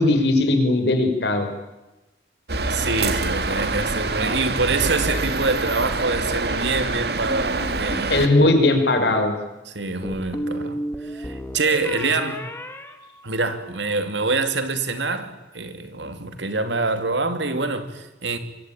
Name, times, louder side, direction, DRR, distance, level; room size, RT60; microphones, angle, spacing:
voice 1, 0.0-1.5 8.1-9.3, left 2 dB, 70° left, 5.3 m, -18 dB
sound 1, 2.5-8.3, right 3 dB, 60° right, 2.1 m, -25 dB
voice 2, 2.7-8.1 9.7-12.4 13.2-18.4, right 3 dB, 80° right, 2.8 m, -25 dB
sound 2, 7.3-8.1 10.0-13.8, equal, 15° left, 2.3 m, -33 dB
25.0 x 23.0 x 9.2 m
head